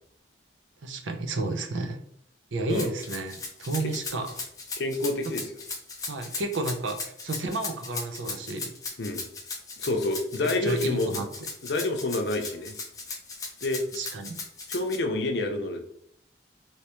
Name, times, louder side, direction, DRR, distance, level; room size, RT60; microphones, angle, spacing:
voice 1, 0.8-2.0 2.5-4.4 6.1-8.7 10.6-11.3 13.9-14.4, right 2 dB, 90° right, 5 dB, 0.6 m, -31 dB
Rattle (instrument), 2.7-15.0, left 4 dB, 20° left, 0.6 m, -37 dB
voice 2, 4.8-5.5 9.0-9.2 9.8-11.2 11.6-12.8 13.6-13.8 14.7-15.8, left 2 dB, 65° left, 4 dB, 0.6 m, -28 dB
3.3 x 2.8 x 2.9 m, 0.67 s
head